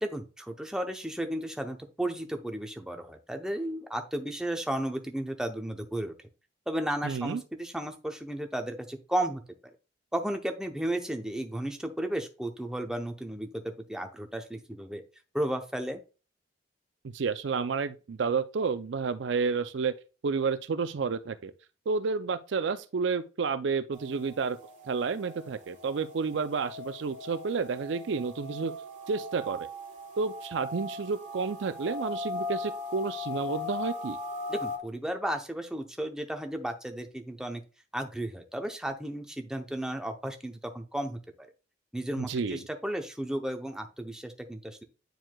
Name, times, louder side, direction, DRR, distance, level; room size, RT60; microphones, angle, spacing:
voice 1, 0.0-6.1 6.7-9.4 10.1-15.0 15.3-16.0 34.5-37.6 37.9-41.2 41.9-44.8, right 1 dB, 5° right, 0.7 m, -34 dB
voice 2, 7.0-7.4 17.1-19.9 20.2-21.5 21.9-24.6 24.9-28.7 29.1-29.7 30.2-34.2 42.2-42.6, right 5 dB, 70° right, 0.5 m, -30 dB
sound 1, 23.9-34.8, left 3 dB, 40° right, 1.8 m, -39 dB
9.1 x 4.6 x 2.3 m
head